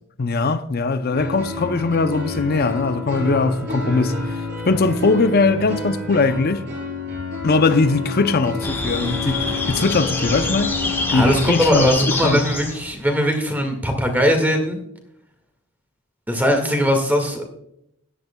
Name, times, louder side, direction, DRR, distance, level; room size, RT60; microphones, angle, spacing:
voice 1, 0.2-6.6 7.4-10.8 11.1-12.5, left 3 dB, 45° left, 0.5 m, -20 dB
sound 1, 1.1-11.6, left 3 dB, 50° right, 4.4 m, -29 dB
sound 2, 8.6-13.0, left 2 dB, 10° left, 1.3 m, -26 dB
voice 2, 11.1-14.8 16.3-17.4, equal, 10° right, 1.8 m, -20 dB
17.0 x 11.0 x 2.2 m
head